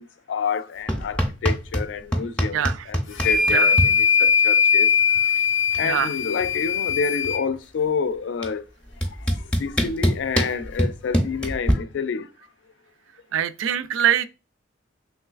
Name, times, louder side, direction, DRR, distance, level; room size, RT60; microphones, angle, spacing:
voice 1, 0.0-4.9 5.8-8.6 9.3-12.3, left 5 dB, 65° left, 0.3 m, -28 dB
sound 1, 0.9-1.9 2.1-3.9 5.2-5.3 5.5-5.9 6.2-7.5 8.4-8.5 9.0-11.7, equal, 5° left, 0.5 m, -23 dB
voice 2, 2.5-2.8 3.5-3.7 5.8-6.1 13.3-14.3, right 10 dB, 85° right, 0.3 m, -23 dB
sound 2, 3.1-7.4, left 6 dB, 90° left, 0.7 m, -20 dB
3.1 x 3.1 x 2.3 m
head